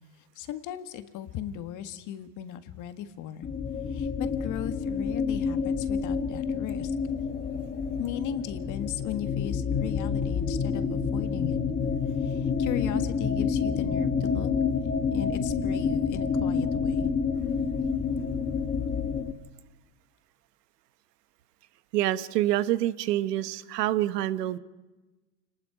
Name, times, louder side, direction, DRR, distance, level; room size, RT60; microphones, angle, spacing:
voice 1, 0.4-3.5 3.9-6.9 8.0-11.6 12.2-14.5 15.1-17.1, left 11 dB, 40° left, 10 dB, 1.7 m, -37 dB
sound 1, 3.4-19.3, left 5 dB, 15° left, 1.2 m, -28 dB
voice 2, 21.9-24.6, right 14 dB, 75° right, 14 dB, 1.3 m, -26 dB
29.0 x 19.5 x 5.0 m, 1.1 s
supercardioid pair, 125°, 48 cm